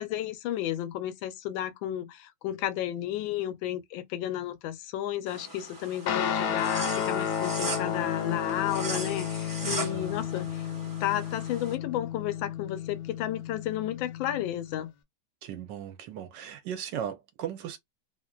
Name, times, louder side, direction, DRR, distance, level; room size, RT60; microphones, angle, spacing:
voice 1, 0.0-10.7 11.0-14.9, left 12 dB, 85° left, 1.3 m, -32 dB
sound 1, 5.3-11.7, right 2 dB, 30° right, 0.3 m, -39 dB
Guitar, 6.1-14.8, left 8 dB, 70° left, 1.1 m, -32 dB
voice 2, 9.6-10.2 15.4-17.8, right 9 dB, 75° right, 1.2 m, -37 dB
3.1 x 2.5 x 2.2 m
omnidirectional pair, 2.1 m